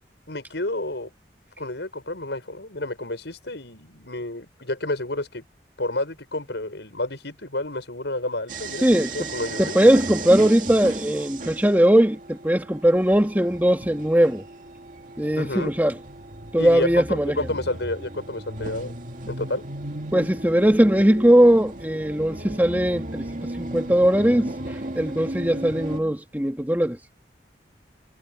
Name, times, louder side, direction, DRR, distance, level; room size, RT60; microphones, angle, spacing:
voice 1, 0.3-1.1 1.6-5.4 5.8-9.7 15.3-15.7 16.6-19.0 19.3-19.6, left 2 dB, 75° left, 6.2 m, -30 dB
sound 1, 8.5-26.0, right 2 dB, 45° right, 2.5 m, -35 dB
voice 2, 8.8-9.3 9.6-14.4 15.2-15.9 16.5-17.5 20.1-27.0, equal, 10° right, 2.0 m, -20 dB
head